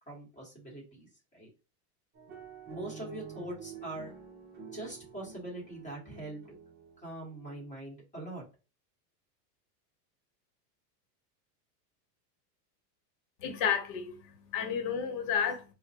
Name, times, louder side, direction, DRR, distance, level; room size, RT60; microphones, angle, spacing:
voice 1, 0.1-1.5 2.7-4.1 4.7-6.5 7.0-8.4, right 1 dB, 15° left, 1.6 m, -43 dB
sound 1, 2.1-7.7, right 6 dB, 20° right, 0.7 m, -48 dB
voice 2, 13.4-15.6, left 7 dB, 55° left, 1.1 m, -31 dB
4.2 x 2.2 x 2.9 m
supercardioid pair, 140°, 50 cm